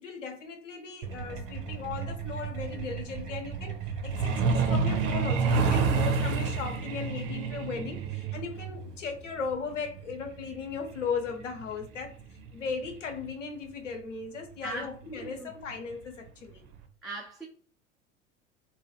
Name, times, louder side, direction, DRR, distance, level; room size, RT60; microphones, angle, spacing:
voice 1, 0.0-3.8 4.0-16.7, left 5 dB, 75° left, 1.0 m, -37 dB
Truck, 1.0-13.3 14.5-14.7 15.1-15.3 15.7-15.9 16.3-16.4 16.8-16.9, right 4 dB, 45° right, 0.8 m, -30 dB
voice 2, 14.6-15.5 17.0-17.5, right 2 dB, ahead, 0.3 m, -39 dB
3.0 x 2.3 x 4.2 m
figure-of-eight pair, 80°, 37 cm